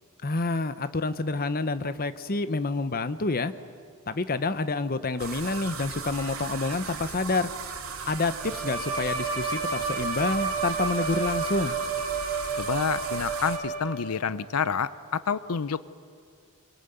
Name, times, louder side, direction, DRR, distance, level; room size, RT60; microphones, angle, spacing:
voice 1, 0.2-3.5 4.1-7.5 8.1-11.8, left 3 dB, 40° left, 12 dB, 0.9 m, -28 dB
sound 1, 5.2-13.6, right 5 dB, 65° right, 3.1 m, -37 dB
Bowed string instrument, 8.3-14.1, right 5 dB, 25° right, 7.8 m, -31 dB
voice 2, 12.6-15.8, left 6 dB, 85° left, 15 dB, 0.6 m, -28 dB
26.0 x 23.0 x 9.2 m, 2.3 s
head